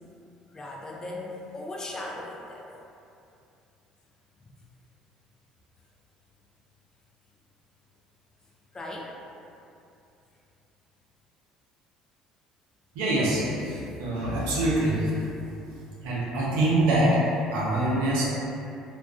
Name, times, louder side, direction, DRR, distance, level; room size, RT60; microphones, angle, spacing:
voice 1, 0.5-2.7 4.4-4.5 8.7-9.1, left 2 dB, 25° left, -2 dB, 0.4 m, -38 dB
voice 2, 12.9-15.3 16.0-18.2, right 1 dB, 75° right, -6 dB, 0.6 m, -25 dB
2.3 x 2.2 x 2.4 m, 2.7 s
hypercardioid pair, 60°, 2 cm